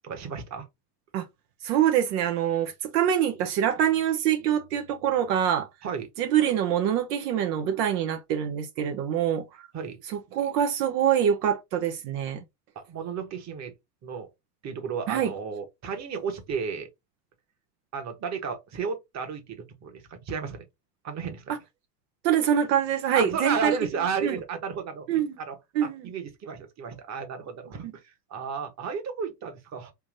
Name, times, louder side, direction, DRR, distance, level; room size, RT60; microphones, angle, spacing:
voice 1, 0.0-0.7 5.8-6.1 9.7-10.0 12.7-13.7 14.0-14.3 14.6-16.9 17.9-20.6 21.0-21.4 23.1-25.1 25.4-29.9, right 6 dB, 35° right, 1.2 m, -33 dB
voice 2, 1.6-5.7 6.2-9.7 10.1-12.4 15.1-15.3 21.5-21.6 22.2-23.8 24.2-24.4 25.1-25.4 25.7-26.1 27.8-27.9, right 9 dB, 75° right, 0.9 m, -25 dB
3.5 x 2.7 x 3.2 m
supercardioid pair, 105°, 49 cm